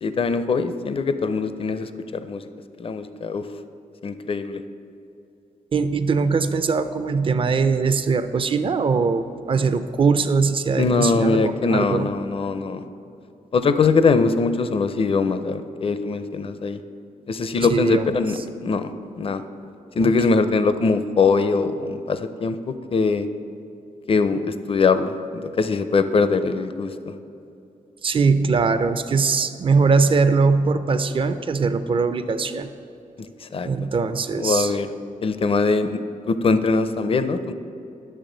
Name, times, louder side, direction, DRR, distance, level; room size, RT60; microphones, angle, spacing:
voice 1, 0.0-1.9 2.2-2.4 2.8-3.4 4.0-4.6 10.8-12.8 13.5-16.8 17.3-18.9 19.2-19.4 20.0-22.6 22.9-23.2 24.1-27.1 33.4-33.7 34.4-34.9 35.2-36.0 36.3-37.5, left 4 dB, 40° left, 11 dB, 0.5 m, -22 dB
voice 2, 5.7-12.1 17.6-18.0 20.0-20.4 28.0-32.7 33.6-34.8, right 4 dB, 35° right, 10 dB, 0.4 m, -21 dB
10.0 x 6.7 x 3.8 m, 2.8 s
cardioid pair, 100°, 15 cm